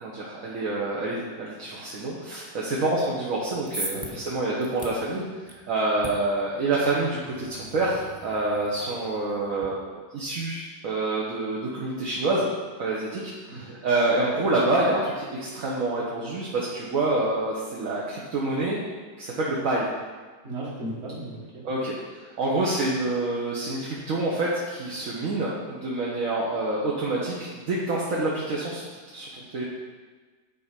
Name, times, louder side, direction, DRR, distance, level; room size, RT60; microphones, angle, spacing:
voice 1, 0.0-5.2 5.7-12.5 12.8-13.2 13.5-18.8 19.2-19.9 21.6-22.0 22.4-29.6, right 2 dB, 65° right, -5 dB, 1.4 m, -27 dB
sound 1, 3.3-9.7, right 1 dB, 20° right, 0.9 m, -41 dB
voice 2, 3.9-4.2 13.5-13.8 20.4-21.7, right 1 dB, 45° right, -5 dB, 2.1 m, -36 dB
9.6 x 4.2 x 5.1 m, 1.4 s
omnidirectional pair, 1.6 m